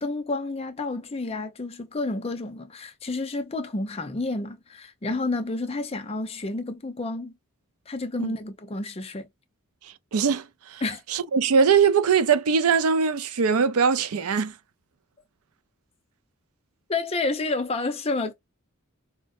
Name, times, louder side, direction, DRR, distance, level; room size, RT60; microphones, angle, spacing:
voice 1, 0.0-7.3 7.9-9.3 10.8-11.0 16.9-18.3, left 2 dB, 25° left, 0.5 m, -30 dB
voice 2, 10.1-10.8 11.1-14.5, right 6 dB, 80° right, 0.5 m, -21 dB
4.3 x 2.1 x 2.5 m
head